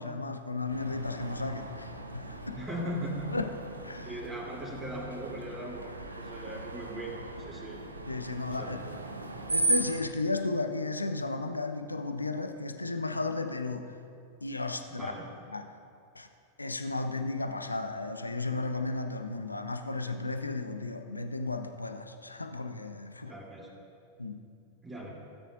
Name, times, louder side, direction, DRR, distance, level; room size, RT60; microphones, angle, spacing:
voice 1, 0.0-2.6 3.3-4.2 8.1-8.8 9.5-13.9 14.4-15.1 15.5-15.7 16.2-16.3 16.6-23.3 24.2-24.4, left 3 dB, 80° left, 7 dB, 0.5 m, -34 dB
Screech, 0.7-10.0, right 2 dB, 80° right, 0.7 m, -37 dB
voice 2, 2.5-3.3 4.0-5.9 6.2-7.1 7.4-7.8 8.6-9.0 15.0-15.2 23.3-23.7 24.8-25.1, right 1 dB, 15° right, -3 dB, 2.7 m, -38 dB
16.5 x 9.0 x 2.4 m, 2.4 s
figure-of-eight pair, 90°, 0 cm